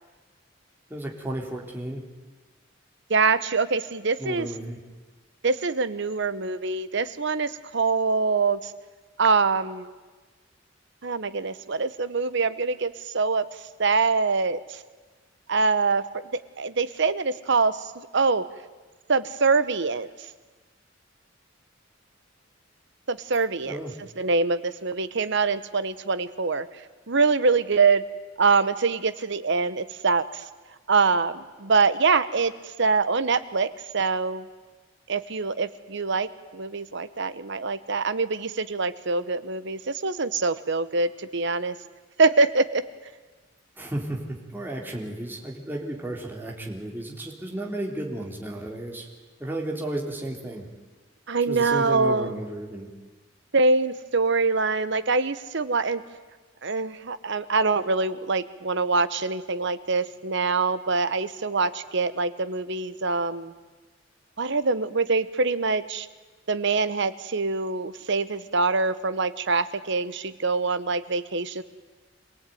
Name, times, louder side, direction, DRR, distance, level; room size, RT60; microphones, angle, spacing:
voice 1, 0.9-2.0 4.2-4.8 23.7-23.9 43.8-49.1 49.4-50.6 51.5-52.9, right 1 dB, 10° right, -1 dB, 3.5 m, -33 dB
voice 2, 3.1-4.5 5.4-8.7 9.2-10.0 11.0-13.5 13.8-14.8 15.5-16.1 16.6-18.5 19.1-20.1 23.1-23.8 24.2-26.7 27.1-28.0 28.4-30.4 30.9-32.5 32.8-34.5 35.1-41.7 42.2-42.8 51.3-52.4 53.5-56.0 56.6-63.5 64.4-66.1 66.5-71.6, right 4 dB, 65° right, 13 dB, 1.1 m, -24 dB
26.5 x 18.0 x 9.4 m, 1.3 s
head